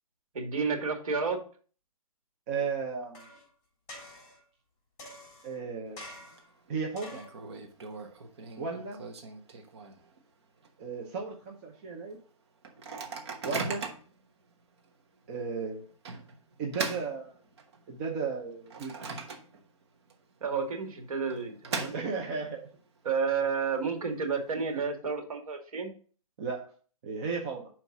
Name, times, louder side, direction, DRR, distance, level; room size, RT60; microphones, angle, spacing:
voice 1, 0.3-1.4 20.4-21.9 23.0-25.9, right 5 dB, 70° right, 4 dB, 2.0 m, -31 dB
voice 2, 2.5-3.3 5.4-6.1 6.7-7.2 8.6-9.0 10.8-12.2 13.4-13.8 15.3-15.9 16.6-17.4 17.9-18.9 21.9-22.7 26.4-26.7 27.0-27.7, right 5 dB, 20° right, -1 dB, 0.7 m, -34 dB
sound 1, 3.1-3.5 3.9-4.4 5.0-5.6 6.0-6.5 7.0-7.4 8.0-8.1, left 1 dB, 30° left, 3.4 m, -47 dB
Microwave oven, 5.9-6.4 6.7-6.8 7.1-10.2 10.6-10.7 11.0-11.3 11.8-11.9 12.6-14.2 14.8-14.9 16.1-17.9 18.3-19.8 20.1-20.2 21.1-22.5, right 4 dB, 50° right, 1.1 m, -39 dB
5.6 x 4.5 x 6.0 m, 0.42 s
hypercardioid pair, 175°, 19 cm